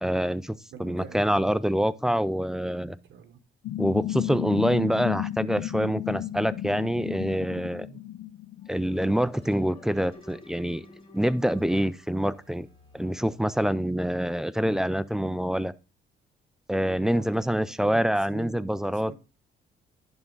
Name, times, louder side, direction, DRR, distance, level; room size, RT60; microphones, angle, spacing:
voice 1, 0.0-3.0 3.8-7.9 8.7-10.9 11.1-12.7 12.9-15.7 16.7-19.1, equal, 5° right, 0.3 m, -26 dB
voice 2, 0.7-1.2 2.8-3.4 7.8-8.0 16.9-19.1, right 7 dB, 70° right, 1.1 m, -46 dB
sound 1, 3.6-9.7, left 14 dB, 70° left, 0.4 m, -34 dB
sound 2, 8.6-14.0, left 2 dB, 25° left, 2.3 m, -53 dB
11.0 x 3.7 x 3.9 m
cardioid pair, 90°, 20 cm